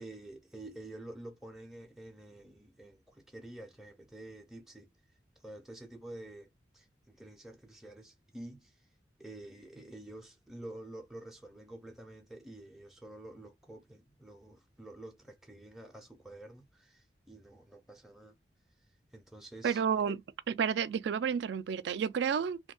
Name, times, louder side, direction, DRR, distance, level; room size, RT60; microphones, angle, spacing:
voice 1, 0.0-4.9 5.4-6.5 6.7-8.9 9.2-18.4 19.1-20.2, right 1 dB, ahead, 0.4 m, -49 dB
voice 2, 19.6-20.2 20.5-22.6, right 7 dB, 75° right, 0.3 m, -30 dB
2.6 x 2.1 x 3.3 m
head